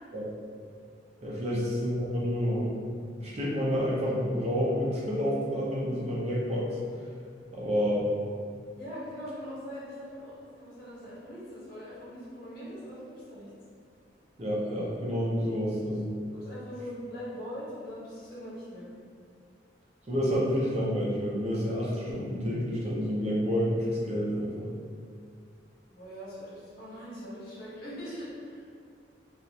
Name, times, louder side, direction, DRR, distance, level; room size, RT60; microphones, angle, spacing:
voice 1, 1.2-2.7 3.2-6.7 7.5-8.1 14.4-16.2 20.1-24.7, equal, 35° right, -6 dB, 0.5 m, -29 dB
voice 2, 8.8-13.5 16.3-18.9 25.9-28.6, equal, 50° left, -9 dB, 0.8 m, -42 dB
2.4 x 2.1 x 2.7 m, 2.2 s
head